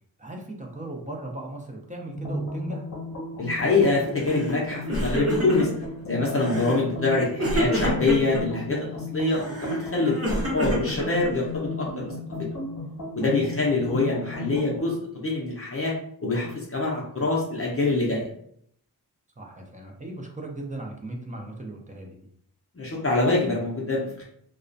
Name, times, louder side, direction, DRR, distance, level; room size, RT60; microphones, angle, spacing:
voice 1, 0.2-2.9 6.5-6.7 13.4-13.8 19.4-22.3, right 1 dB, 20° right, 1 dB, 0.4 m, -37 dB
sound 1, 2.2-14.9, left 2 dB, 55° left, 0.9 m, -35 dB
voice 2, 3.4-5.7 6.0-10.2 10.5-12.1 13.1-15.9 16.2-18.3 22.7-24.2, left 3 dB, 35° left, -4 dB, 0.5 m, -25 dB
Crying sobbing, 4.2-4.6 4.8-5.9 6.4-6.8 7.4-8.4 9.3-11.6, equal, 35° right, 0.8 m, -28 dB
2.3 x 2.1 x 2.5 m, 0.67 s
wide cardioid pair, 75°, 40 cm